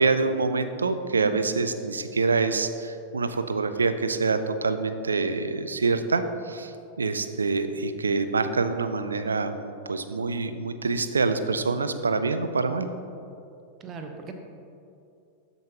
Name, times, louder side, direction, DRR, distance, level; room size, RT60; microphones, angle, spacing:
voice 1, 0.0-12.9, right 4 dB, 75° right, 10 dB, 0.4 m, -26 dB
voice 2, 13.8-14.3, right 5 dB, 30° right, 4 dB, 0.8 m, -38 dB
13.0 x 5.3 x 2.9 m, 2.6 s
figure-of-eight pair, 90°, 0 cm